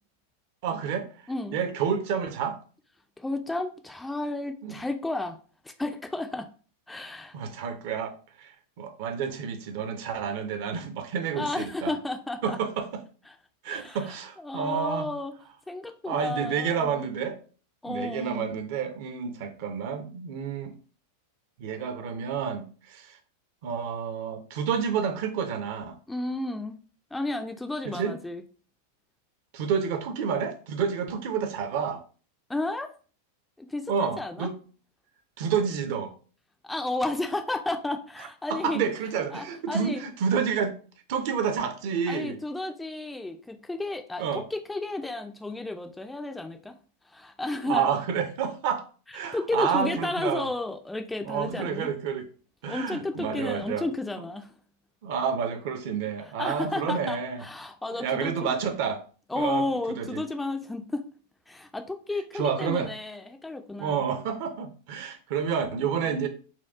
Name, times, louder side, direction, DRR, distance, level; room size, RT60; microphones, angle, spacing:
voice 1, 0.6-1.1 1.5-2.6 4.6-4.8 7.3-8.5 8.8-12.0 12.4-13.0 13.6-15.1 16.1-17.4 17.9-20.7 21.6-23.2 23.6-26.0 27.9-28.2 29.5-32.0 33.9-34.6 35.4-36.1 38.5-40.8 41.1-42.4 44.2-44.4 47.6-48.8 49.1-50.5 51.2-52.3 52.6-53.8 55.0-57.5 58.0-59.0 59.4-60.2 62.3-62.9 63.8-66.3, right 7 dB, 50° right, 0.5 m, -29 dB
voice 2, 1.3-1.6 3.2-5.4 5.6-6.5 6.9-7.4 11.4-12.6 13.7-14.0 14.4-15.3 15.7-17.0 17.8-18.5 26.1-26.8 27.1-28.4 32.5-32.9 33.6-34.5 36.6-38.8 39.3-40.0 42.1-46.8 47.1-47.9 49.3-51.9 52.7-54.5 56.4-58.6 59.3-61.1 61.5-64.0 66.0-66.1, left 2 dB, 5° left, 0.3 m, -32 dB
4.2 x 2.3 x 2.6 m
figure-of-eight pair, 90°, 0 cm